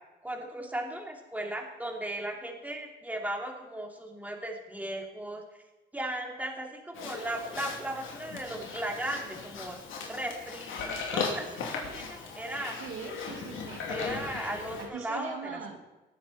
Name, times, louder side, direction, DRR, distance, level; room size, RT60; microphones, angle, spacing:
voice 1, 0.2-5.4 5.9-9.8 10.1-12.8 13.9-15.8, right 1 dB, 10° right, 1 dB, 2.8 m, -37 dB
Livestock farm animals working animals, 6.9-14.9, left 5 dB, 80° left, 2.8 m, -37 dB
voice 2, 12.8-13.8 14.8-15.8, right 6 dB, 90° right, 3 dB, 2.0 m, -41 dB
19.0 x 9.2 x 4.3 m, 1.1 s
cardioid pair, 90°, 20 cm